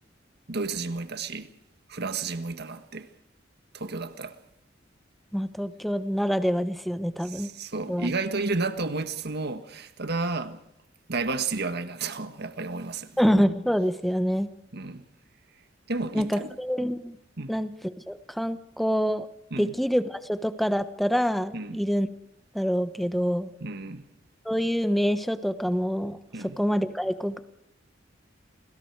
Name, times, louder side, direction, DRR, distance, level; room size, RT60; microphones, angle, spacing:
voice 1, 0.5-1.5 1.9-3.1 3.7-4.4 7.2-10.6 11.1-13.2 14.7-15.0 15.9-16.5 17.4-17.6 19.5-19.8 21.5-21.8 23.6-24.1 26.3-26.6, right 3 dB, 60° right, 1.6 m, -32 dB
voice 2, 5.3-7.5 7.9-8.1 13.2-14.5 16.1-17.2 17.5-17.7 18.1-19.3 19.6-22.1 22.5-23.5 24.4-26.2 26.6-27.4, equal, ahead, 1.2 m, -26 dB
29.0 x 20.5 x 4.8 m
head